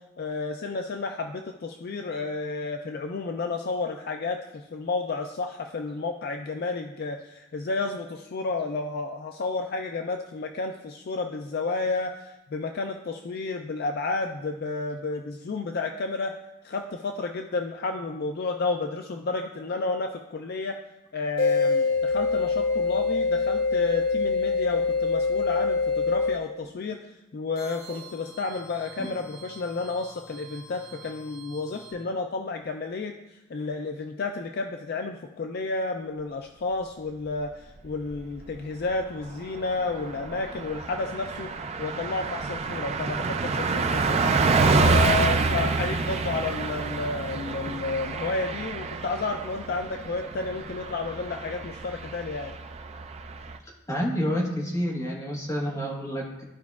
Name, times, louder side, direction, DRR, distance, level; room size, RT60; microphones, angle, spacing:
voice 1, 0.2-16.3 16.6-20.8 21.1-41.5 41.8-44.2 44.7-52.5, left 3 dB, 45° left, 4 dB, 0.3 m, -31 dB
sound 1, 21.4-26.5 27.6-31.9, left 4 dB, 70° left, 2.1 m, -27 dB
Car passing by, 37.9-38.5 38.9-39.0 39.3-53.6, right 4 dB, 30° right, 0.3 m, -28 dB
voice 2, 53.9-56.4, equal, 15° left, -3 dB, 1.3 m, -29 dB
12.5 x 4.7 x 2.4 m, 0.96 s
head